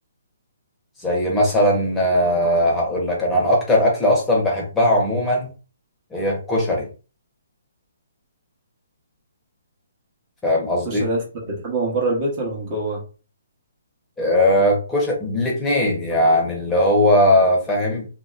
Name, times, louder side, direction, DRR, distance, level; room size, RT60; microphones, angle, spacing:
voice 1, 1.0-5.5 6.1-6.9 10.4-11.0 14.2-18.1, left 1 dB, 5° left, -3 dB, 0.9 m, -19 dB
voice 2, 10.8-13.0, right 2 dB, 30° right, -2 dB, 1.1 m, -25 dB
2.9 x 2.8 x 2.5 m, 0.35 s
hypercardioid pair, 160°, 0 cm